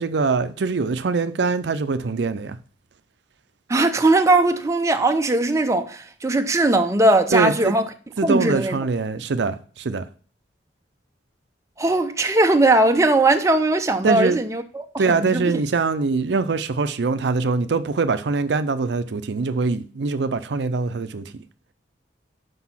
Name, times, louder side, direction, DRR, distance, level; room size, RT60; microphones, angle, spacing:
voice 1, 0.0-2.6 7.3-7.8 8.2-10.0 14.0-14.4 15.0-21.4, right 4 dB, 75° right, 0.5 m, -23 dB
voice 2, 3.7-7.9 8.2-8.8 11.8-15.6, right 2 dB, 15° right, 0.5 m, -19 dB
6.0 x 5.3 x 5.7 m
head